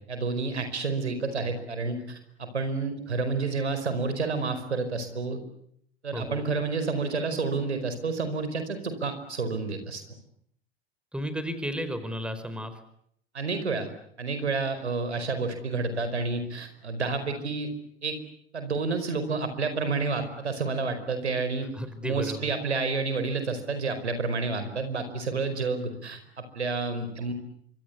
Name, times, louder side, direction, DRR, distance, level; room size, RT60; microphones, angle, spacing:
voice 1, 0.1-5.4 6.0-10.0 13.3-13.9 14.2-17.7 18.0-18.2 18.5-21.7 22.0-27.3, right 4 dB, 85° right, 8 dB, 4.9 m, -29 dB
voice 2, 6.1-6.5 11.1-12.7 21.7-22.5, equal, 5° right, 11 dB, 4.8 m, -33 dB
26.5 x 25.0 x 8.3 m, 0.70 s
hypercardioid pair, 90°, 33 cm